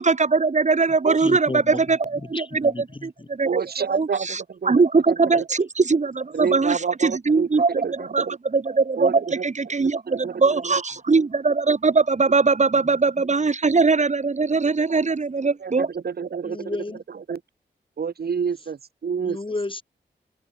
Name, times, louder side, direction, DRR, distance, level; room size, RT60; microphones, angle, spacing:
voice 1, 0.0-3.6 3.9-15.9, right 4 dB, 40° right, 1.7 m, -21 dB
voice 2, 1.2-1.8 2.3-3.3 5.3-5.4 16.4-17.0 19.2-19.8, left 2 dB, 30° left, 4.9 m, -32 dB
voice 3, 3.4-4.7 5.1-5.4 6.3-8.4 9.0-9.4 10.2-10.7 15.6-16.7 17.3-17.4 18.0-19.4, right 6 dB, 65° right, 1.3 m, -28 dB
open air
cardioid pair, 65°, 17 cm